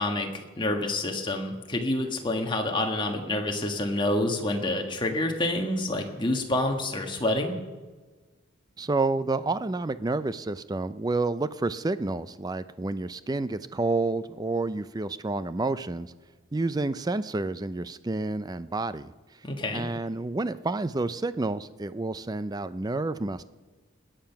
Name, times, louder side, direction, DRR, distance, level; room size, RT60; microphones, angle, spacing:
voice 1, 0.0-7.6 19.4-19.9, left 1 dB, 20° left, 3 dB, 1.5 m, -28 dB
voice 2, 8.8-16.1 16.5-19.1 19.7-23.4, right 2 dB, 20° right, 14 dB, 0.4 m, -29 dB
20.5 x 9.0 x 5.8 m, 1.3 s
head